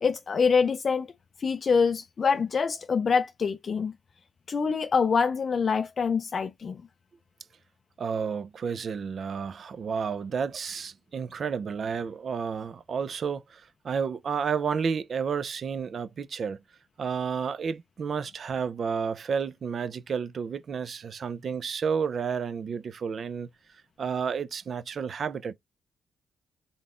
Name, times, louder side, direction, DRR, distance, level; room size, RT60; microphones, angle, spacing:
voice 1, 0.0-1.1 1.4-3.9 4.5-6.8, left 5 dB, 50° left, 0.4 m, -25 dB
voice 2, 8.0-16.6 17.0-23.5 24.0-25.5, right 6 dB, 55° right, 0.5 m, -31 dB
3.9 x 3.8 x 2.4 m
cardioid pair, 85°, 0 cm